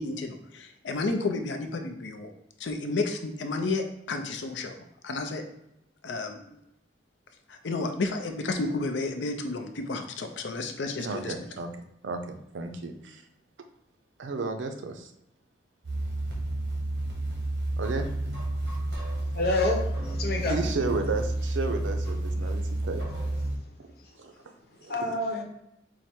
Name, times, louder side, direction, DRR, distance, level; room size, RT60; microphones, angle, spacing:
voice 1, 0.0-2.3 2.6-4.7 5.0-5.4 6.0-6.4 7.5-11.3, left 3 dB, 75° left, 6 dB, 0.5 m, -31 dB
voice 2, 11.0-11.7 12.0-13.2 14.2-15.1 17.8-18.1 20.5-23.0 23.8-23.9 24.2-24.5 24.8-25.1, right 3 dB, 80° right, 6 dB, 0.5 m, -33 dB
sound 1, 15.8-23.6, right 1 dB, 65° right, 1.2 m, -30 dB
voice 3, 19.1-20.6 24.8-25.4, left 2 dB, 55° left, 1 dB, 0.8 m, -29 dB
4.7 x 2.1 x 4.3 m, 0.82 s
head